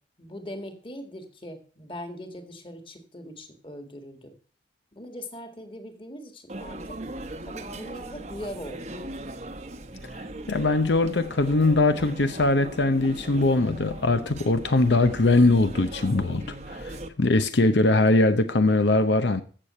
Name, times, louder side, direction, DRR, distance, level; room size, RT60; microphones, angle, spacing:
voice 1, 0.2-4.4 4.9-6.9 7.4-9.0, equal, 30° left, 1.8 m, -40 dB
sound 1, 6.5-17.1, right 1 dB, 40° right, 0.9 m, -39 dB
voice 2, 10.5-19.4, left 2 dB, 80° left, 0.8 m, -21 dB
15.0 x 6.7 x 4.3 m
head